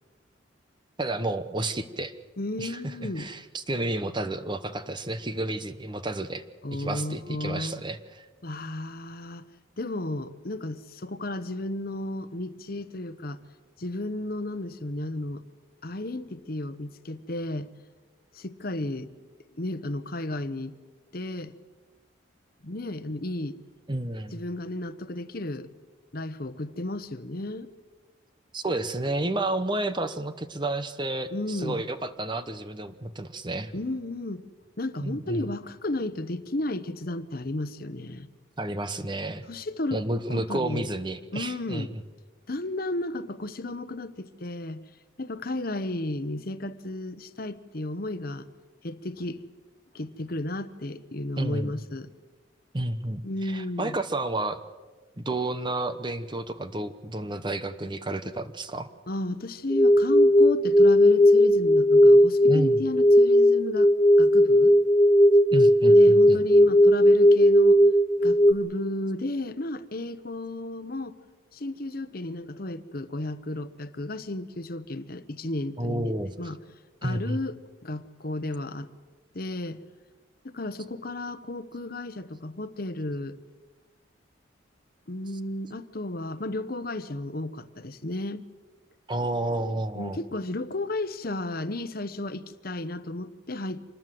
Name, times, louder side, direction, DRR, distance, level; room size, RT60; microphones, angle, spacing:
voice 1, 1.0-2.1 2.6-2.8 3.2-6.4 6.7-8.3 23.9-24.4 28.5-33.7 35.0-35.5 38.6-39.4 39.9-41.9 51.4-51.8 52.7-54.6 55.2-58.9 62.5-62.8 65.5-66.4 75.8-76.3 77.0-77.4 89.1-90.2, right 1 dB, 25° right, 11 dB, 1.0 m, -31 dB
voice 2, 2.4-3.3 6.6-7.8 8.4-9.4 9.8-13.4 13.8-15.5 15.8-17.7 18.3-19.1 19.6-20.8 21.1-21.5 22.6-23.6 24.3-25.7 26.1-27.7 31.3-31.9 33.7-34.4 34.8-38.3 39.5-40.0 40.3-40.9 41.3-41.9 42.5-44.8 45.2-48.5 48.8-49.4 49.9-52.1 53.2-54.0 59.1-63.9 64.2-64.8 65.9-67.8 68.2-71.2 71.5-76.6 77.0-78.9 79.3-79.8 80.4-83.4 85.1-88.4 89.6-93.8, left 1 dB, 50° left, 12 dB, 1.1 m, -33 dB
sound 1, 59.7-68.5, equal, 15° left, 0.6 m, -17 dB
26.0 x 20.0 x 7.8 m, 1.3 s
head